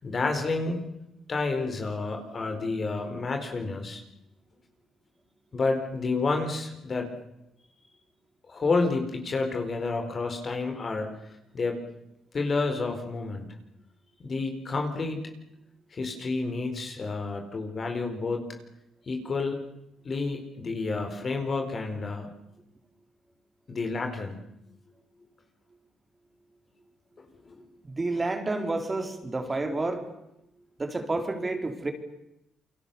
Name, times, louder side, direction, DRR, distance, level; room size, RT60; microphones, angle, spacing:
voice 1, 0.0-0.8 1.3-4.0 5.5-7.1 8.5-11.1 11.5-11.8 12.3-13.5 14.2-15.2 15.9-18.5 19.1-19.6 20.0-22.3 23.7-24.4 27.2-27.6, left 3 dB, 40° left, 4 dB, 4.4 m, -30 dB
voice 2, 27.8-30.1 30.8-31.9, right 2 dB, 25° right, 6 dB, 3.9 m, -30 dB
29.0 x 23.5 x 7.1 m, 0.86 s
cardioid pair, 90°, 0 cm